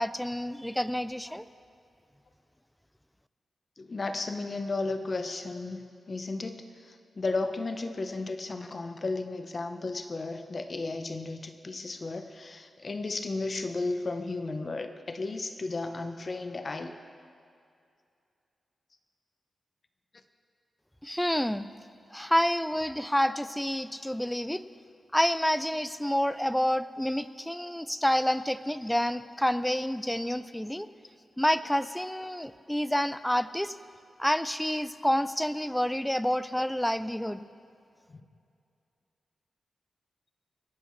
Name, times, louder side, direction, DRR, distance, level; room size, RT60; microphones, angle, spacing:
voice 1, 0.0-1.5 21.0-21.7 22.1-24.7 25.1-30.9 31.4-33.8 34.2-37.4, equal, 5° left, 13 dB, 0.3 m, -28 dB
voice 2, 3.8-6.7 7.2-16.9 38.1-38.2, left 3 dB, 35° left, 7 dB, 0.8 m, -34 dB
26.0 x 11.5 x 3.2 m, 2.4 s
wide cardioid pair, 165°, 0 cm